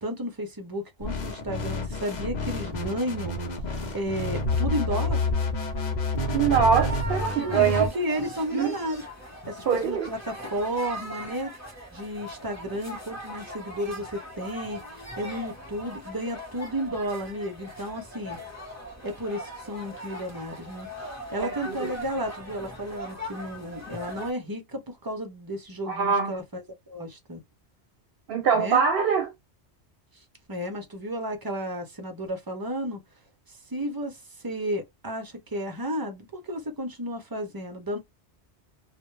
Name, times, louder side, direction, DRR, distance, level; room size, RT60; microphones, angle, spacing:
voice 1, 0.0-3.4 3.9-5.2 7.4-11.5 11.9-18.4 19.0-20.9 21.3-27.4 28.5-28.8 30.1-30.2 30.5-33.0 33.5-38.0, equal, 30° right, 0.4 m, -33 dB
sound 1, 1.0-7.9, left 2 dB, 45° left, 0.7 m, -29 dB
voice 2, 6.3-7.9 8.5-8.7 9.7-10.1 21.4-21.9 25.9-26.3 28.3-29.3, right 6 dB, 65° right, 0.7 m, -23 dB
sound 2, 6.7-24.3, equal, 15° left, 0.8 m, -40 dB
2.2 x 2.1 x 3.0 m
omnidirectional pair, 1.1 m